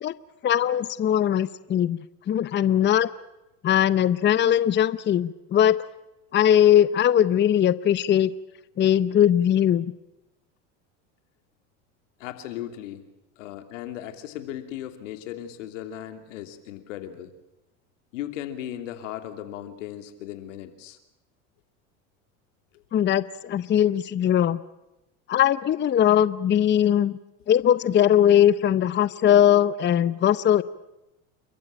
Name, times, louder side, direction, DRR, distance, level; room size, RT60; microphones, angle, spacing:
voice 1, 0.4-2.0 2.3-3.1 3.6-5.8 6.3-8.3 8.8-9.9 22.9-24.6 25.3-27.2 27.5-30.6, left 10 dB, 30° left, 16 dB, 0.8 m, -20 dB
voice 2, 12.2-13.0 13.4-17.3 18.1-21.0 22.7-22.8, left 11 dB, 85° left, 8 dB, 3.0 m, -37 dB
30.0 x 14.5 x 8.8 m, 0.96 s
supercardioid pair, 100°, 36 cm